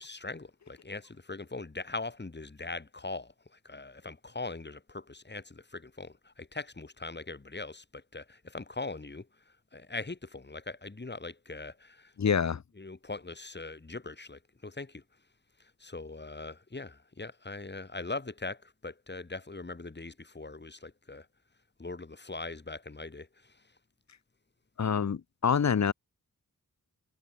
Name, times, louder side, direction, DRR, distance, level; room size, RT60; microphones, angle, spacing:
voice 1, 0.0-12.1 12.8-15.0 15.6-21.3 21.8-23.7, left 3 dB, 30° left, 3.0 m, -41 dB
voice 2, 12.2-12.6 24.8-25.9, left 7 dB, 55° left, 0.8 m, -26 dB
wide cardioid pair, 105°, 33 cm